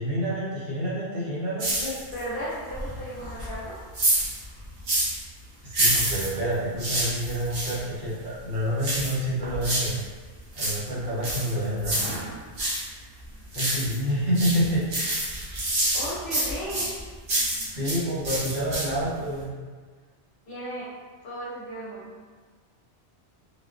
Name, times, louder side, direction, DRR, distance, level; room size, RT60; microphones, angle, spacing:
voice 1, 0.0-2.0 5.6-10.0 10.5-12.0 13.5-15.2 17.7-19.5, equal, 50° right, -9 dB, 1.0 m, -28 dB
sound 1, 1.6-2.3 2.7-5.2 5.7-7.8 8.8-10.0 10.4-12.9 13.2-14.0 14.3-18.0 18.2-19.1 19.4-19.5, right 1 dB, 80° right, 1.2 m, -27 dB
voice 2, 2.1-3.8 15.9-16.9 20.5-20.8 21.2-22.1, equal, 60° left, -9 dB, 0.9 m, -35 dB
3.5 x 2.1 x 2.4 m, 1.5 s
omnidirectional pair, 1.1 m